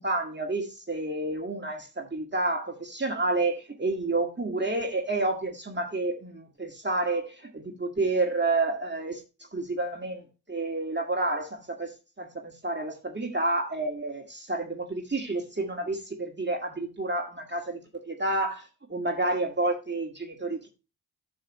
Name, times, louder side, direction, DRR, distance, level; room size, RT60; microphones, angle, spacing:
voice 1, 0.0-9.2 9.5-20.7, right 2 dB, 25° right, 2.0 m, -30 dB
9.3 x 6.4 x 3.1 m
cardioid pair, 55°, 41 cm